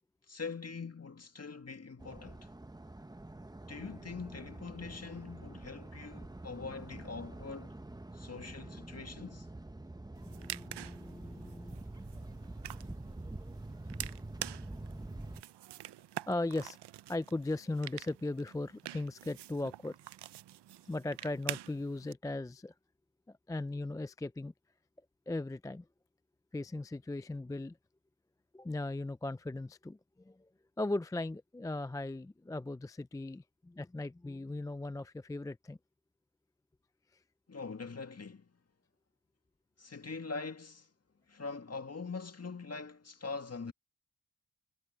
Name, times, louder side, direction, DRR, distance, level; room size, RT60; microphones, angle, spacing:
voice 1, 0.3-2.5 3.7-7.8 8.1-9.5 37.5-38.5 39.8-40.9 41.3-43.7, left 4 dB, 40° left, 2.0 m, -43 dB
sound 1, 2.0-15.4, right 2 dB, 10° right, 0.8 m, -46 dB
sound 2, 10.1-22.1, right 13 dB, 90° right, 0.6 m, -47 dB
voice 2, 10.2-11.9 16.3-16.8 17.1-20.0 20.9-22.7 23.3-24.5 25.3-25.9 26.5-27.8 28.5-30.5 30.8-35.8, left 2 dB, 10° left, 0.3 m, -38 dB
cardioid pair, 60°, 40 cm